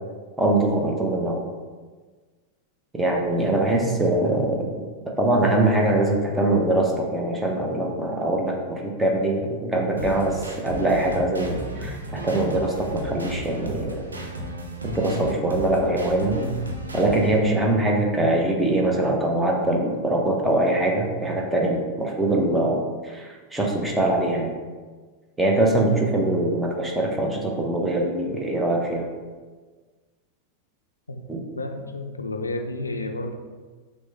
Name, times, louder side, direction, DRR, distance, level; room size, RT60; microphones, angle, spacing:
voice 1, 0.4-1.4 2.9-4.7 5.1-14.0 14.8-16.4 16.9-24.5 25.4-29.1 31.3-31.4, right 1 dB, 10° right, -1 dB, 0.8 m, -23 dB
sound 1, 10.0-17.4, equal, 75° right, 0.6 m, -34 dB
voice 2, 31.6-33.3, left 2 dB, 80° left, 5 dB, 0.4 m, -31 dB
6.2 x 2.2 x 3.3 m, 1.4 s
figure-of-eight pair, 90°, 0 cm